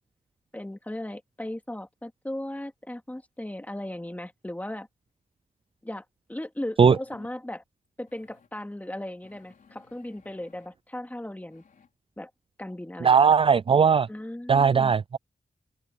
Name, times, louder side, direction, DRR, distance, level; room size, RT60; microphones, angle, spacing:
voice 1, 0.5-4.9 5.8-6.0 6.3-7.6 8.0-11.6 12.2-12.3 12.6-13.3 14.1-14.9, left 1 dB, 10° left, 2.7 m, -37 dB
sound 1, 6.0-6.1 6.8-7.4 8.1-8.5 9.2-10.7 11.5-11.9, left 6 dB, 70° left, 4.6 m, -57 dB
voice 2, 13.0-14.1 14.5-15.2, right 6 dB, 40° right, 0.3 m, -18 dB
open air
wide cardioid pair, 85°, 15 cm